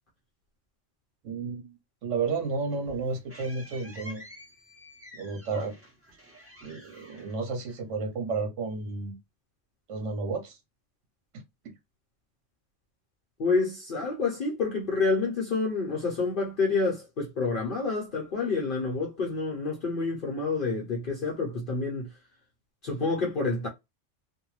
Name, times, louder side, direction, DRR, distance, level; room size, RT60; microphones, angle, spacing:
voice 1, 1.2-1.7 2.0-4.2 5.1-5.7 6.6-9.2 9.9-10.6 11.3-11.4, right 4 dB, 80° right, 1.1 m, -32 dB
sound 1, 2.3-8.1, left 1 dB, 10° right, 1.0 m, -50 dB
voice 2, 13.4-22.1 22.8-23.7, left 4 dB, 50° left, 0.8 m, -28 dB
2.6 x 2.2 x 3.0 m
omnidirectional pair, 1.3 m